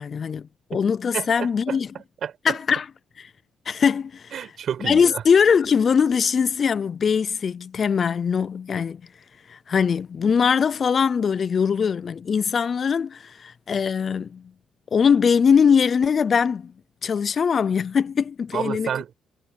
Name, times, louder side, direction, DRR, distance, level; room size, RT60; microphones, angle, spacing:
voice 1, 0.0-1.9 2.4-2.9 3.2-3.3 3.7-4.3 4.8-9.0 9.5-14.4 14.9-16.7 17.0-18.9, left 6 dB, 45° left, 0.5 m, -21 dB
voice 2, 1.1-1.8 2.2-2.6 4.3-5.2 18.5-19.1, right 8 dB, 60° right, 5.1 m, -30 dB
cardioid pair, 90°, 0 cm